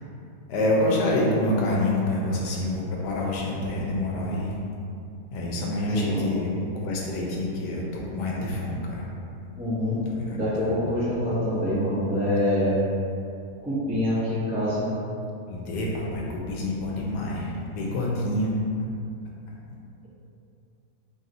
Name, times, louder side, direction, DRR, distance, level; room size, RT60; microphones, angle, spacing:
voice 1, 0.5-4.6 5.3-7.8 8.1-9.0 10.1-10.8 15.5-18.6, left 1 dB, 85° left, -3 dB, 1.2 m, -27 dB
voice 2, 5.8-6.3 9.6-10.0 10.3-12.8 13.6-14.8, left 1 dB, 10° right, -11 dB, 0.3 m, -25 dB
3.2 x 2.6 x 4.0 m, 2.6 s
omnidirectional pair, 1.8 m